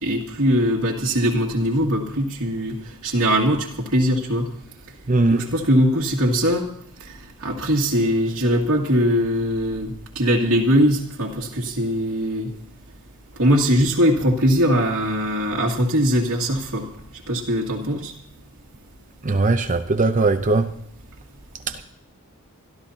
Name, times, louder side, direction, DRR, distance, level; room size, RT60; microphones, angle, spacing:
voice 1, 0.0-4.5 5.3-6.6 7.0-12.5 13.4-16.9 17.3-18.1, equal, 80° right, 2.2 m, -21 dB
voice 2, 5.1-5.5 19.2-20.7 21.7-21.8, right 3 dB, 35° right, 0.7 m, -19 dB
26.5 x 12.5 x 2.8 m
head